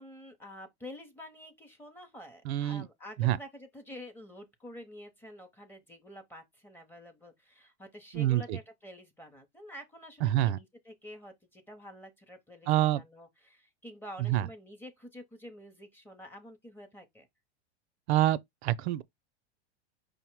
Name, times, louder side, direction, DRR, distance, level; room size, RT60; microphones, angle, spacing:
voice 1, 0.0-17.3, equal, 5° left, 0.6 m, -48 dB
voice 2, 2.4-2.9 3.2-3.4 8.1-8.6 10.2-10.6 12.7-13.0 14.2-14.5 18.1-19.0, right 14 dB, 70° right, 0.5 m, -27 dB
5.3 x 2.1 x 4.5 m
supercardioid pair, 145°, 34 cm